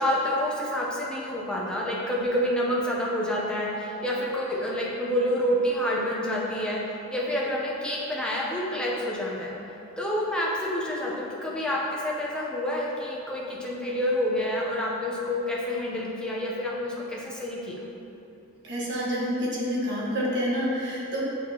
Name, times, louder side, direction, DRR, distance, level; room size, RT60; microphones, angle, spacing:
voice 1, 0.0-6.8 7.1-9.5 10.0-17.7, equal, 5° left, -5 dB, 0.7 m, -28 dB
voice 2, 18.6-21.2, equal, 55° right, -6 dB, 1.3 m, -28 dB
7.0 x 5.5 x 2.9 m, 3.0 s
head